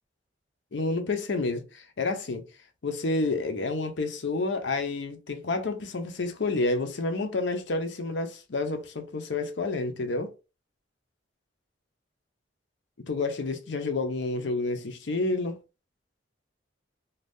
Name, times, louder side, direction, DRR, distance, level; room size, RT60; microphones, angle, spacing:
voice 1, 0.7-2.5 2.8-10.3 13.1-15.6, left 3 dB, 70° left, 0.6 m, -29 dB
2.6 x 2.3 x 3.4 m
head